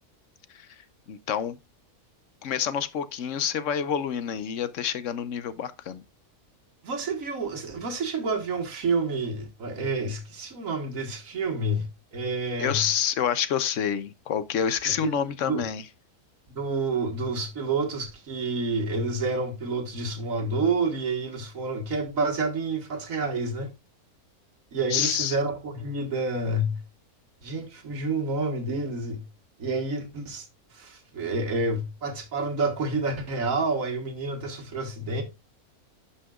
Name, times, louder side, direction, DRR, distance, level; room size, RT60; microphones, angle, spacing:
voice 1, 1.1-1.6 2.4-6.0 12.6-15.8 24.9-25.4, left 8 dB, 60° left, 1.0 m, -28 dB
voice 2, 6.8-12.8 14.9-15.1 15.4-15.7 16.5-23.7 24.7-26.8 27.4-29.2 29.6-35.2, right 3 dB, 60° right, 1.8 m, -29 dB
11.0 x 5.7 x 2.4 m
omnidirectional pair, 1.6 m